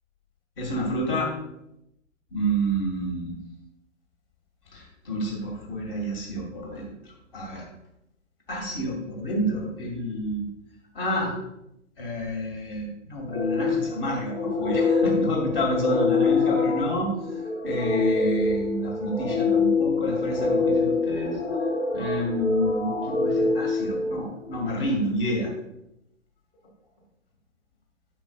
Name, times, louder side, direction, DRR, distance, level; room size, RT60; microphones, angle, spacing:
voice 1, 0.6-1.3 2.3-3.4 4.7-6.9 7.3-7.7 8.5-10.5 11.0-11.3 12.0-17.1 17.6-21.4 21.9-25.5, equal, 45° left, 0 dB, 2.2 m, -29 dB
sound 1, 13.3-24.6, left 4 dB, 25° left, 2.1 m, -25 dB
8.5 x 6.3 x 2.4 m, 0.82 s
figure-of-eight pair, 130°, 40 cm